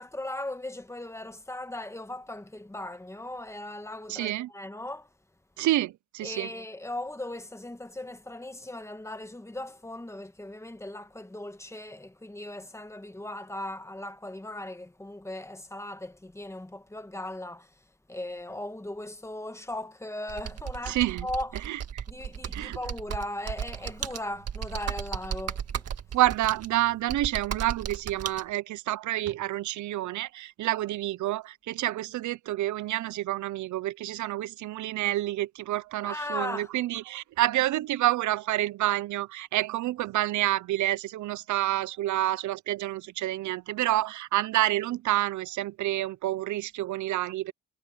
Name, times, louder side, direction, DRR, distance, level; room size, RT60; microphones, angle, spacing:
voice 1, 0.0-5.1 6.2-17.8 18.1-21.8 22.1-25.8 36.0-36.7, left 1 dB, 10° left, 1.6 m, -38 dB
voice 2, 4.1-4.5 5.6-6.5 20.9-21.3 21.7-22.0 22.5-22.8 26.1-47.5, right 15 dB, 75° right, 0.7 m, -28 dB
Computer keyboard, 20.3-28.4, right 8 dB, 55° right, 1.8 m, -35 dB
cardioid pair, 90°, 30 cm